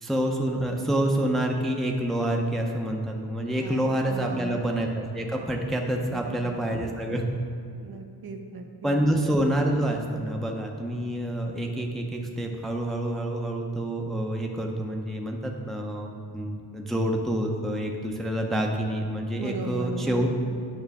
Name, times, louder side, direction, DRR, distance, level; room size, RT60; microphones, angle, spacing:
voice 1, 0.0-7.2 8.8-20.3, right 1 dB, ahead, 1 dB, 0.5 m, -27 dB
voice 2, 3.6-4.5 6.1-6.6 7.7-9.0 19.4-20.3, right 4 dB, 65° right, 4 dB, 0.8 m, -38 dB
8.9 x 5.7 x 3.5 m, 2.5 s
wide cardioid pair, 110°, 40 cm